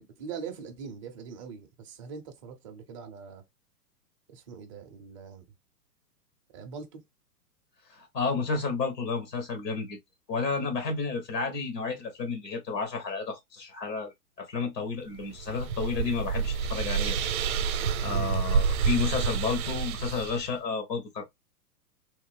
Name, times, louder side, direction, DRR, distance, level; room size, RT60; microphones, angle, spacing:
voice 1, 0.0-3.4 4.3-5.4 6.5-7.0 18.1-18.4, right 6 dB, 25° right, 0.4 m, -42 dB
voice 2, 7.9-10.0 10.3-17.2 18.0-21.2, left 4 dB, 90° left, 1.5 m, -31 dB
sound 1, 15.1-20.5, right 6 dB, 60° right, 0.6 m, -28 dB
3.2 x 2.0 x 3.2 m
hypercardioid pair, 125°, 48 cm